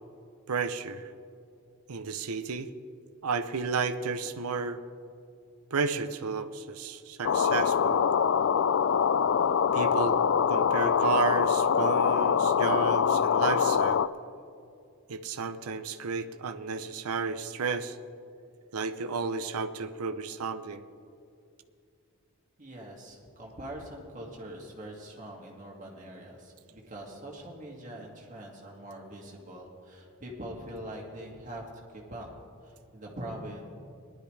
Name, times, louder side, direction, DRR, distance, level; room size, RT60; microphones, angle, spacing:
voice 1, 0.5-1.1 1.9-2.7 3.2-4.8 5.7-8.0 9.7-10.2 10.5-14.0 15.1-18.0 18.7-20.8, right 4 dB, 90° right, 10 dB, 0.6 m, -32 dB
sound 1, 7.2-14.1, left 7 dB, 60° left, 0.3 m, -24 dB
voice 2, 22.6-31.6 31.9-32.3 32.6-33.7, right 1 dB, 35° right, -2 dB, 2.2 m, -43 dB
19.5 x 12.0 x 3.3 m, 2.5 s
head